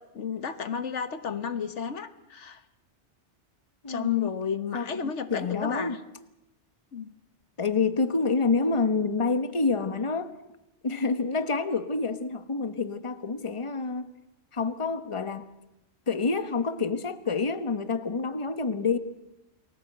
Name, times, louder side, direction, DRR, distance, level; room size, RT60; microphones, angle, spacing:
voice 1, 0.1-2.6 3.9-6.0 6.9-7.1, left 6 dB, 80° left, 1.5 m, -32 dB
voice 2, 3.8-4.3 4.7-6.0 7.6-10.3 10.8-14.1 14.5-15.5 16.1-19.0, left 4 dB, 25° left, 1.3 m, -28 dB
29.5 x 20.0 x 8.0 m
omnidirectional pair, 1.2 m